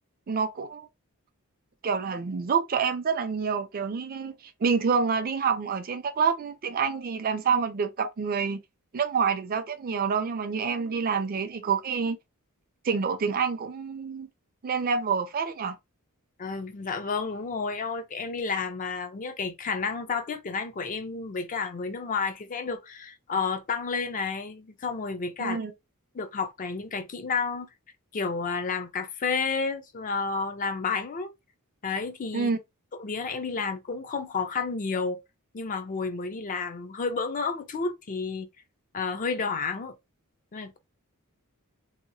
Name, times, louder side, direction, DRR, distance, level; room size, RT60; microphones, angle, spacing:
voice 1, 0.3-0.9 1.8-4.3 4.6-8.6 8.9-12.2 12.8-14.3 14.6-15.8 25.4-25.7 32.3-32.6, right 5 dB, 40° right, 0.4 m, -27 dB
voice 2, 16.4-25.6 26.1-27.7 28.1-31.3 31.8-32.5 33.0-35.2 35.5-38.5 38.9-40.0 40.5-40.8, left 4 dB, 35° left, 0.4 m, -31 dB
2.8 x 2.3 x 2.6 m
head